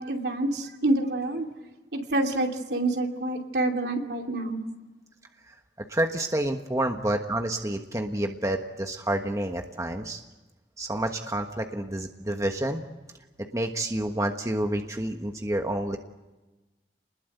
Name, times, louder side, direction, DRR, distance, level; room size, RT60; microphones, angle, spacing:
voice 1, 0.0-1.5 1.9-4.6, right 2 dB, 70° right, 3 dB, 2.8 m, -27 dB
voice 2, 5.9-10.2 10.8-12.8 13.5-16.0, right 1 dB, 20° right, 4 dB, 1.3 m, -29 dB
28.5 x 20.5 x 8.0 m, 1.1 s
head